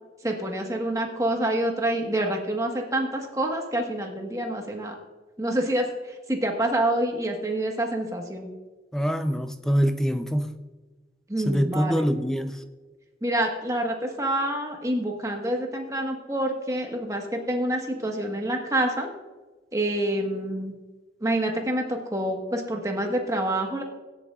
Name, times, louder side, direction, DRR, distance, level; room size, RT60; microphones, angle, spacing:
voice 1, 0.2-4.9 5.4-8.5 11.3-12.1 13.2-19.1 19.7-20.7 21.2-23.8, right 1 dB, 15° right, 2 dB, 1.4 m, -27 dB
voice 2, 8.9-10.6 11.5-12.6, equal, 5° left, 8 dB, 0.6 m, -24 dB
17.5 x 9.8 x 2.5 m, 1.3 s
head